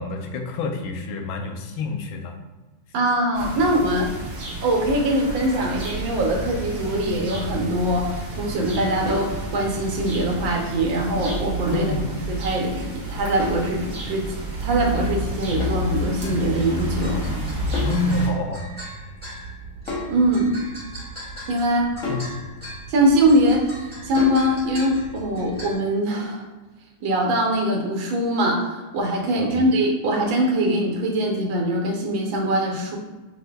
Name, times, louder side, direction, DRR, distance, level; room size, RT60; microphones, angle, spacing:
voice 1, 0.0-2.4 3.5-3.6 11.7-12.1 17.8-18.6 22.1-22.4 29.4-29.6, left 2 dB, 85° left, 3 dB, 1.4 m, -27 dB
voice 2, 2.9-4.1 4.6-11.9 12.3-14.3 14.6-17.3 20.1-20.5 21.5-21.9 22.9-26.4 27.0-33.0, right 1 dB, 80° right, 0 dB, 1.5 m, -22 dB
sound 1, 3.3-18.3, right 1 dB, 55° right, 1.2 m, -30 dB
sound 2, 9.1-9.4 11.3-11.6 13.4-13.7 15.6-15.9 17.7-18.0 19.9-20.2 22.0-22.4 24.2-24.5, left 3 dB, 55° left, 0.9 m, -29 dB
sound 3, 15.8-25.8, right 1 dB, 5° left, 1.1 m, -39 dB
6.2 x 2.5 x 2.2 m, 1.2 s
omnidirectional pair, 2.2 m